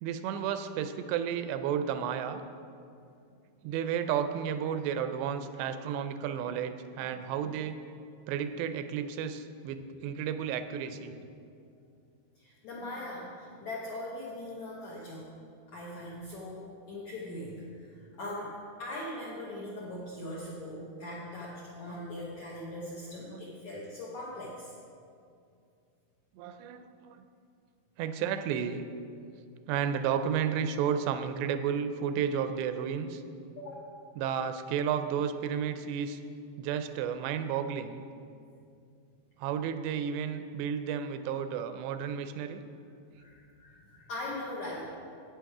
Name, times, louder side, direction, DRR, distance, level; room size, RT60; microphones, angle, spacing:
voice 1, 0.0-2.4 3.6-7.8 8.3-11.2 12.9-13.0 21.9-22.0 23.3-23.4 26.4-27.2 28.0-28.9 29.7-33.2 34.2-36.2 36.6-38.0 39.4-42.6, right 8 dB, 85° right, 9 dB, 2.7 m, -32 dB
voice 2, 12.4-15.3 15.7-24.7 33.6-33.8 43.2-44.9, left 1 dB, 70° left, -5 dB, 1.8 m, -40 dB
11.5 x 8.5 x 4.7 m, 2.4 s
omnidirectional pair, 4.9 m